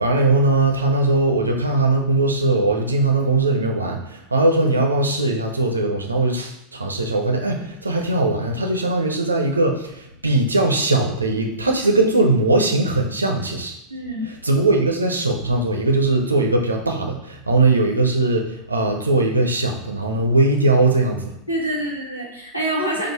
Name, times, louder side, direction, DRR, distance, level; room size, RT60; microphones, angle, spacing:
voice 1, 0.0-13.7 14.4-21.3, right 2 dB, 85° right, 2 dB, 0.6 m, -20 dB
voice 2, 13.9-14.3 21.5-23.1, right 1 dB, 90° left, -2 dB, 1.0 m, -26 dB
4.7 x 2.4 x 4.6 m, 0.79 s
figure-of-eight pair, 75°, 0 cm